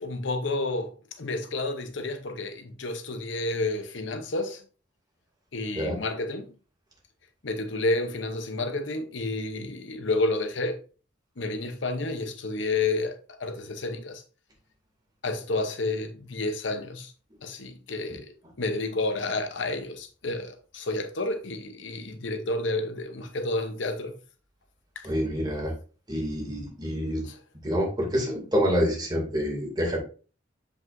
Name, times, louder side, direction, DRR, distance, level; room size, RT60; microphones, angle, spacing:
voice 1, 0.0-0.9 1.2-4.6 5.5-6.5 7.4-10.8 11.4-14.2 15.2-17.1 17.4-18.3 18.6-24.2 27.2-27.4, left 2 dB, 70° left, 0.8 m, -30 dB
voice 2, 25.0-25.7 26.1-27.2 27.6-30.0, equal, 20° right, 2.4 m, -27 dB
7.8 x 5.1 x 2.6 m
head